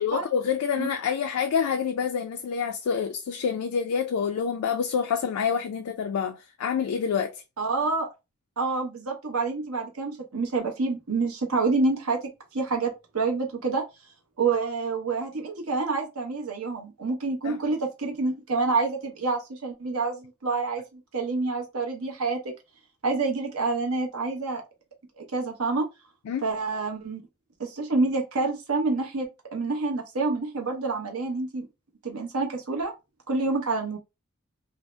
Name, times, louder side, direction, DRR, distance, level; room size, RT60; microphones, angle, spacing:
voice 1, 0.0-7.3 17.4-17.6 26.3-26.5, left 7 dB, 70° left, 0.3 m, -27 dB
voice 2, 7.6-8.1 8.6-12.2 12.5-13.8 14.4-22.4 23.0-24.6 25.2-25.8 26.4-27.2 27.6-31.7 32.0-32.9 33.3-34.0, right 3 dB, 70° right, 0.8 m, -27 dB
2.6 x 2.0 x 3.2 m
head